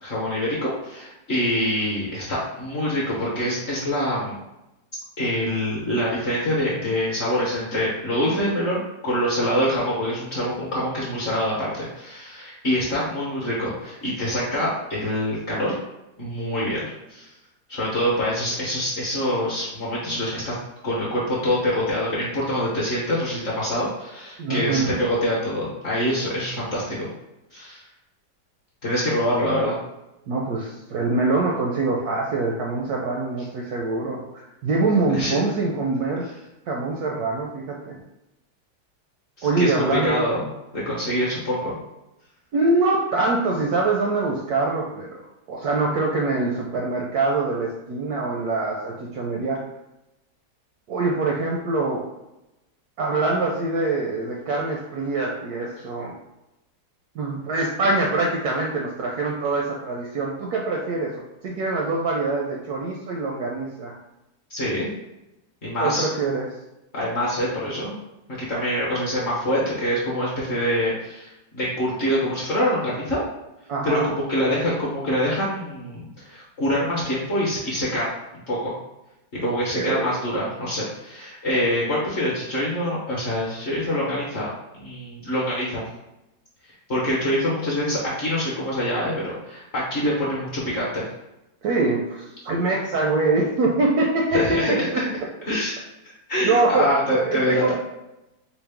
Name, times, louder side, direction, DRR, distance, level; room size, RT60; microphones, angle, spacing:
voice 1, 0.0-4.3 5.2-15.7 16.2-17.3 17.7-20.5 20.8-27.1 27.5-27.8 28.8-29.8 35.1-35.3 39.4-40.5 40.7-41.7 64.5-64.9 65.6-66.1 66.9-67.9 68.3-73.2 73.8-78.1 78.5-78.7 79.3-84.5 84.7-85.8 86.9-91.0 94.3-95.1 95.5-95.7 96.0-97.7, equal, 50° left, -6 dB, 0.9 m, -25 dB
voice 2, 24.4-24.9 30.3-36.2 36.7-38.0 39.4-40.2 42.5-45.2 45.5-49.6 50.9-52.0 53.0-56.1 57.1-61.1 61.4-63.9 65.8-66.5 73.7-74.1 79.4-80.1 91.6-95.0 96.4-96.9 97.2-97.7, right 3 dB, 75° right, -1 dB, 0.9 m, -24 dB
4.6 x 2.1 x 3.4 m, 0.92 s
omnidirectional pair, 2.0 m